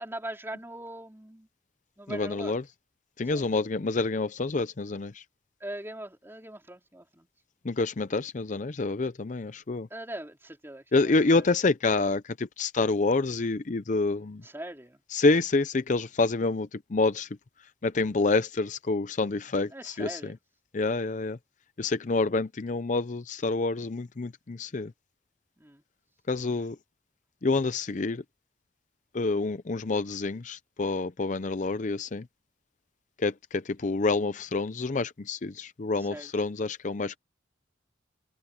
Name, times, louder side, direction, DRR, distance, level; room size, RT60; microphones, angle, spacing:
voice 1, 0.0-1.5 2.0-2.6 3.3-3.5 5.6-7.3 9.9-11.4 14.4-15.0 19.7-20.3 25.6-25.8 36.0-36.3, right 1 dB, 15° right, 3.4 m, -41 dB
voice 2, 2.1-2.6 3.2-5.2 7.6-9.9 10.9-14.4 15.1-17.3 17.8-20.3 20.7-21.4 21.8-24.9 26.3-26.8 27.4-28.2 29.1-32.3 33.2-37.2, left 3 dB, 40° left, 0.5 m, -27 dB
head